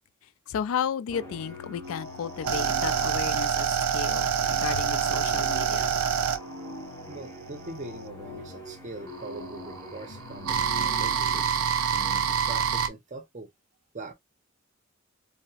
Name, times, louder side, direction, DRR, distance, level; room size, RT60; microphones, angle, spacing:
voice 1, 0.5-3.7 3.9-5.9, left 7 dB, 75° left, 0.3 m, -33 dB
sound 1, 1.1-11.6, left 2 dB, 15° left, 0.6 m, -43 dB
sound 2, 1.9-8.1 9.1-12.9, right 7 dB, 85° right, 0.4 m, -26 dB
voice 2, 7.1-13.5 13.9-14.1, right 2 dB, 35° right, 0.5 m, -42 dB
2.7 x 2.0 x 2.8 m
head